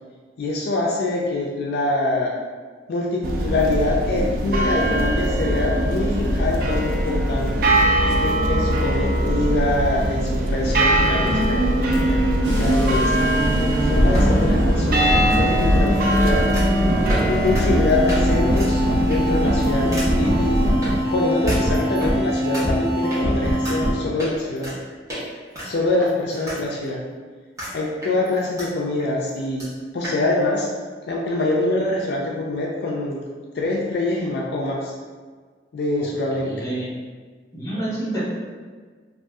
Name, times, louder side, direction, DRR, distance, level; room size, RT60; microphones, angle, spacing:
voice 1, 0.4-2.4 2.9-7.7 8.2-12.3 12.6-13.1 13.6-16.4 17.3-20.6 21.1-24.7 25.6-27.0 27.7-29.7 29.9-30.7 31.1-33.2 33.5-34.9 35.7-36.7, left 2 dB, 65° left, -2 dB, 0.3 m, -24 dB
sound 1, 3.2-20.7, right 1 dB, 50° right, 0.3 m, -21 dB
sound 2, 12.4-23.9, equal, 75° right, 0.7 m, -23 dB
sound 3, 13.9-15.2 16.5-16.8 17.1-17.3 17.5-17.6 18.1-18.2 18.5-18.7 19.1-19.4 19.9-20.1 20.8-20.9 21.5-22.1 22.5-22.6 23.1-23.2 23.6-23.8 24.2-24.8 25.1-25.2 25.5-26.6 26.9-27.0 27.6-27.7 28.0-28.7 29.0-29.1 29.3-29.4 29.6-29.7 30.0-30.2, equal, 15° right, 0.8 m, -27 dB
voice 2, 36.0-36.9 37.5-38.2, right 1 dB, 20° left, -7 dB, 0.9 m, -29 dB
2.5 x 2.3 x 3.4 m, 1.5 s
head